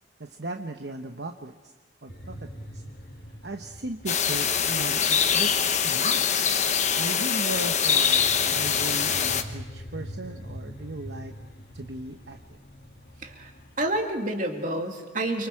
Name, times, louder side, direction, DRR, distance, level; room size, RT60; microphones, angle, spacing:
voice 1, 0.2-1.7 2.0-2.8 3.4-6.3 6.9-11.3 11.7-12.6, right 2 dB, 60° right, 5 dB, 1.0 m, -37 dB
sound 1, 2.1-14.1, equal, 55° left, 2.3 m, -44 dB
sound 2, 4.1-9.4, left 7 dB, 40° left, 1.2 m, -24 dB
voice 2, 13.8-15.5, right 1 dB, 40° right, 3 dB, 2.7 m, -29 dB
29.0 x 25.0 x 4.8 m, 1.3 s
head